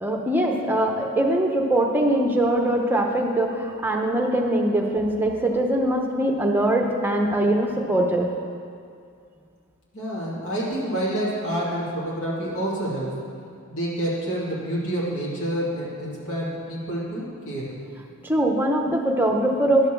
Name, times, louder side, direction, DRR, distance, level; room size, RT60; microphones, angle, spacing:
voice 1, 0.0-8.3 18.2-19.9, right 1 dB, 10° right, 1 dB, 0.7 m, -22 dB
voice 2, 9.9-13.2 13.7-17.7, right 1 dB, 70° left, -6 dB, 2.5 m, -28 dB
11.0 x 4.1 x 6.7 m, 2.3 s
head